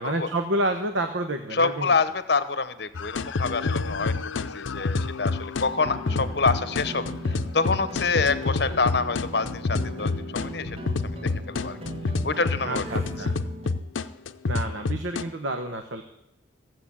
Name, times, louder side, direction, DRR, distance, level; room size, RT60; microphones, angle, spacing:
voice 1, 0.0-1.9 12.6-13.3 14.5-16.0, right 1 dB, 75° right, 6 dB, 1.0 m, -29 dB
voice 2, 1.5-4.1 4.5-10.8 11.2-11.8 12.2-12.8, left 4 dB, 55° left, 13 dB, 0.9 m, -27 dB
sound 1, 2.9-15.2, left 3 dB, 80° left, 0.6 m, -28 dB
sound 2, 5.6-13.8, right 1 dB, 30° right, 1.0 m, -39 dB
16.0 x 7.8 x 8.6 m, 0.89 s
head